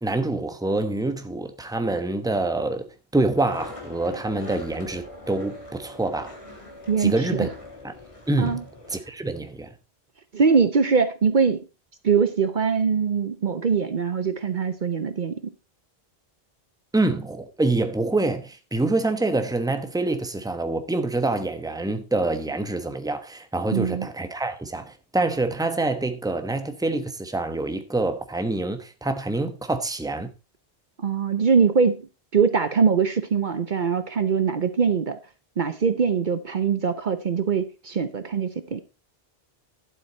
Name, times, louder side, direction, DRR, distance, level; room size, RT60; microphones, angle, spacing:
voice 1, 0.0-6.4 7.0-7.5 7.8-7.9 8.3-8.6 8.9-9.7 16.9-30.3, right 2 dB, 5° right, 1.0 m, -26 dB
Skateboard, 3.4-9.0, left 1 dB, 30° left, 2.6 m, -41 dB
voice 2, 6.9-7.5 8.4-8.6 10.3-11.6 12.0-15.5 23.7-24.1 31.0-32.0 32.3-35.2 35.6-38.8, right 5 dB, 55° right, 0.9 m, -22 dB
11.5 x 8.0 x 4.2 m
omnidirectional pair, 1.0 m